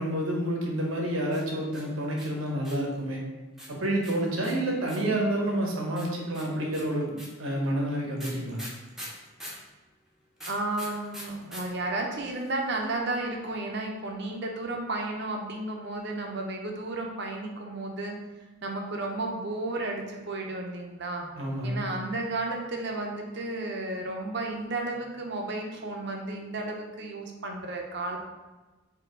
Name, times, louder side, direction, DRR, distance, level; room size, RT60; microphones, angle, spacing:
voice 1, 0.0-3.2 3.7-8.6 21.4-21.8, right 1 dB, 80° right, -1 dB, 1.0 m, -29 dB
sound 1, 1.3-2.9 3.6-5.2 6.0-9.7 10.4-11.6 11.9-12.0 12.2-12.6, equal, ahead, 0.8 m, -43 dB
voice 2, 10.5-18.2 18.6-21.2 21.6-28.2, right 2 dB, 55° right, 1 dB, 0.7 m, -33 dB
4.6 x 2.8 x 3.7 m, 1.2 s
head